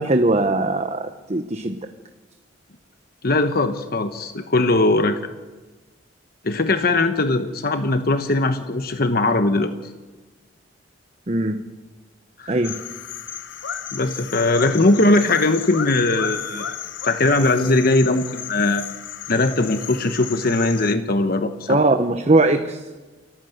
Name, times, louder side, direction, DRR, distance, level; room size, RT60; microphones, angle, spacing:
voice 1, 0.0-1.8 11.3-11.6 12.5-12.8 21.7-22.8, right 2 dB, 35° right, 7 dB, 1.0 m, -20 dB
voice 2, 3.2-5.2 6.4-9.7 12.4-12.6 13.9-16.7 17.0-18.8 19.3-21.8, left 2 dB, 55° left, 8 dB, 1.1 m, -20 dB
sound 1, 12.6-20.9, left 8 dB, 80° left, 1.1 m, -33 dB
28.5 x 14.5 x 7.9 m, 1.3 s
head